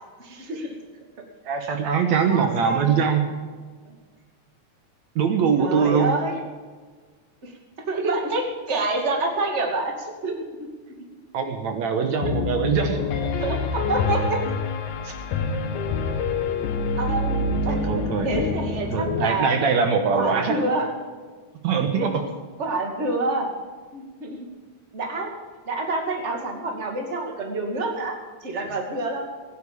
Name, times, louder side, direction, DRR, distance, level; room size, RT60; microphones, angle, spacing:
voice 1, 0.2-0.7 2.3-2.9 3.9-4.0 5.6-6.3 7.4-7.5 7.9-10.3 10.6-10.7 13.4-14.4 15.0-15.1 17.0-17.8 18.2-19.5 20.1-20.9 22.0-22.1 22.6-23.5 23.9-24.4 24.9-25.3 25.7-29.2, right 2 dB, 25° right, 2 dB, 2.3 m, -27 dB
voice 2, 1.5-3.2 5.2-6.1 11.3-13.0 17.7-18.3 18.9-20.6 21.6-22.2, right 6 dB, 70° right, 6 dB, 2.4 m, -22 dB
Piano, 12.2-19.3, left 4 dB, 75° left, 2.5 m, -26 dB
17.5 x 9.8 x 7.0 m, 1.5 s
omnidirectional pair, 3.4 m